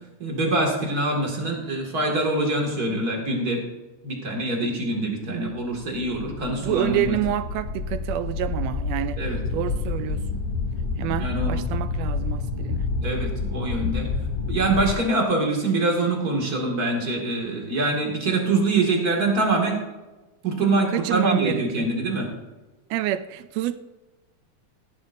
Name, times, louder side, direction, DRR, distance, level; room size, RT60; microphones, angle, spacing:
voice 1, 0.2-3.6 4.0-7.2 9.2-9.4 11.1-11.6 13.0-14.1 14.5-19.8 20.4-22.3, right 2 dB, 35° right, 2.3 m, -24 dB
sound 1, 5.8-14.9, left 4 dB, 65° left, 2.4 m, -28 dB
voice 2, 6.6-9.2 9.5-10.4 11.0-12.9 20.9-21.9 22.9-23.8, right 12 dB, 80° right, 1.5 m, -28 dB
16.0 x 11.0 x 2.6 m
omnidirectional pair, 3.4 m